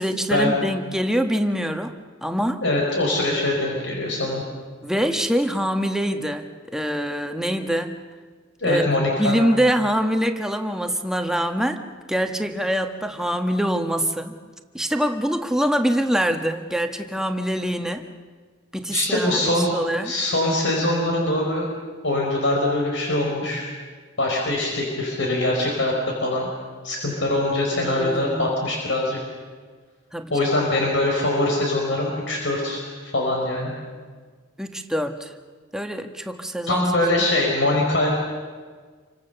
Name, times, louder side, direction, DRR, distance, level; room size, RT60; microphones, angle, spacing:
voice 1, 0.0-1.9 2.2-2.6 4.8-7.9 8.7-8.9 9.2-11.8 12.1-14.4 14.7-18.1 18.7-20.1 27.7-28.6 30.1-30.5 34.6-35.3 35.7-36.8 37.2-37.3, equal, 5° right, 5 dB, 1.3 m, -24 dB
voice 2, 2.6-4.4 8.6-9.4 18.9-19.7 20.0-21.7 22.0-23.6 24.2-26.5 26.8-29.2 30.3-33.7 36.7-38.1, left 1 dB, 70° left, -1 dB, 4.7 m, -23 dB
28.0 x 24.5 x 6.8 m, 1.5 s
head